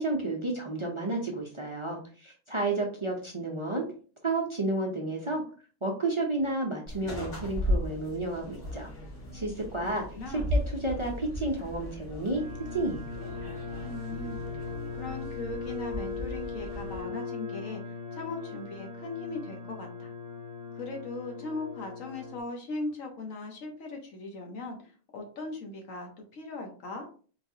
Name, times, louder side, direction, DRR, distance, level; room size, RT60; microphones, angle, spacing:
voice 1, 0.0-3.9 4.2-5.4 5.8-8.9 9.3-12.4 12.7-13.1, right 2 dB, 30° right, 0 dB, 0.6 m, -31 dB
sound 1, 6.9-17.0, equal, 65° left, 2.5 m, -36 dB
voice 2, 9.8-10.6 13.8-20.1 20.7-27.1, left 2 dB, 85° left, 2 dB, 1.4 m, -39 dB
sound 2, 12.3-22.4, left 4 dB, 50° left, 1.1 m, -39 dB
4.5 x 3.1 x 2.7 m, 0.40 s
omnidirectional pair, 1.3 m